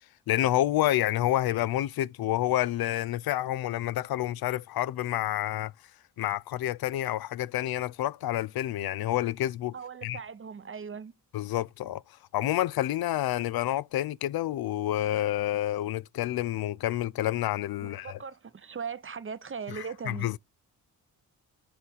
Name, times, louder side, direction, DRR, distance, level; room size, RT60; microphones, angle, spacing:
voice 1, 0.3-5.7 6.2-9.7 10.0-10.2 11.3-12.0 12.3-18.2 19.7-20.4, left 13 dB, 70° left, 0.5 m, -29 dB
voice 2, 9.7-11.1 17.8-20.3, right 6 dB, 35° right, 0.7 m, -39 dB
6.7 x 4.3 x 5.5 m
cardioid pair, 85°, 39 cm